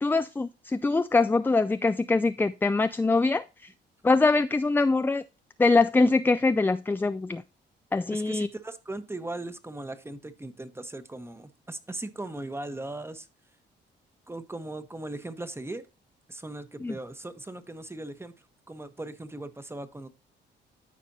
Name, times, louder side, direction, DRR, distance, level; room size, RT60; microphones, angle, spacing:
voice 1, 0.0-3.4 4.0-5.2 5.6-7.4 7.9-8.5 16.8-17.0, left 3 dB, 10° left, 0.3 m, -23 dB
voice 2, 8.1-13.3 14.3-15.9 16.3-18.3 18.7-20.1, right 2 dB, 10° right, 1.0 m, -38 dB
13.5 x 5.0 x 2.7 m
cardioid pair, 90°, 20 cm